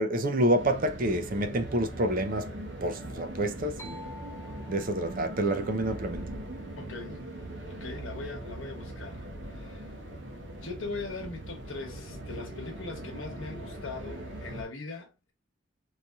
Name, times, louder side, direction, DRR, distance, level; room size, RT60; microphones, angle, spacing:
voice 1, 0.0-2.5 2.8-4.0 4.7-6.3, right 1 dB, 45° right, 0.5 m, -28 dB
sound 1, 0.6-14.6, right 1 dB, 70° right, 0.9 m, -41 dB
sound 2, 3.8-7.5, left 1 dB, 10° left, 0.4 m, -51 dB
voice 2, 6.7-7.2 7.7-10.0 10.6-15.3, left 3 dB, 90° left, 1.1 m, -40 dB
3.1 x 2.7 x 2.3 m
head